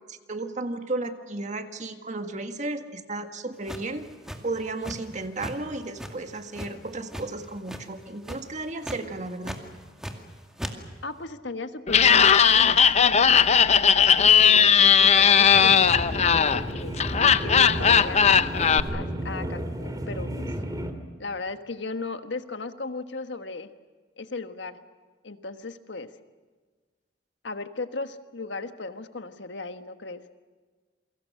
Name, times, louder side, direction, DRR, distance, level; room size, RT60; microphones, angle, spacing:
voice 1, 0.1-4.0 4.4-9.6, right 2 dB, 40° right, 7 dB, 1.7 m, -34 dB
sound 1, 3.7-5.1 5.4-5.6 6.0-7.3 7.6-8.0 8.2-8.5 8.8-9.0 9.4-10.3 10.6-10.7, equal, 5° right, 2.2 m, -36 dB
voice 2, 11.0-13.5 14.2-18.4 18.9-20.5 21.2-23.7 24.2-24.8 25.2-26.1 27.4-30.2, left 3 dB, 80° left, 8 dB, 1.5 m, -36 dB
Laughter, 11.9-18.8, left 7 dB, 40° left, 0.7 m, -18 dB
sound 2, 15.5-20.9, right 1 dB, 20° right, 2.6 m, -32 dB
29.0 x 24.0 x 6.5 m, 1.4 s
head